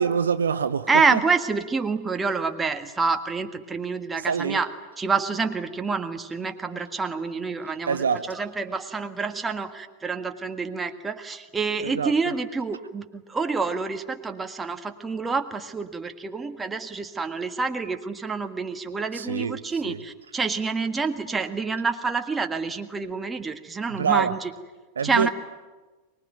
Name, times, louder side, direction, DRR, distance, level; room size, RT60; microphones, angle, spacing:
voice 1, 0.0-1.2 4.2-4.6 7.9-8.3 11.8-12.3 19.1-20.0 23.9-24.3 25.0-25.3, right 6 dB, 70° right, 0.7 m, -26 dB
voice 2, 0.9-4.7 5.0-24.5 25.0-25.3, right 4 dB, 15° right, 1.7 m, -27 dB
24.0 x 21.0 x 9.3 m
figure-of-eight pair, 90°, 0 cm